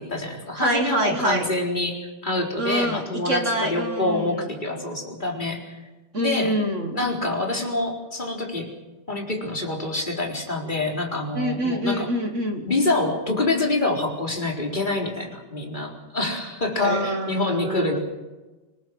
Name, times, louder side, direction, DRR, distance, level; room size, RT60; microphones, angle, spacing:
voice 1, 0.0-2.0 2.2-5.8 6.2-6.5 6.9-8.7 9.1-12.1 12.7-18.0, left 2 dB, 20° left, 0 dB, 4.3 m, -26 dB
voice 2, 0.6-1.5 2.6-4.4 6.1-7.0 11.3-12.6 16.8-18.0, right 1 dB, 35° right, 6 dB, 1.9 m, -26 dB
26.0 x 20.0 x 6.3 m, 1.1 s
omnidirectional pair, 2.3 m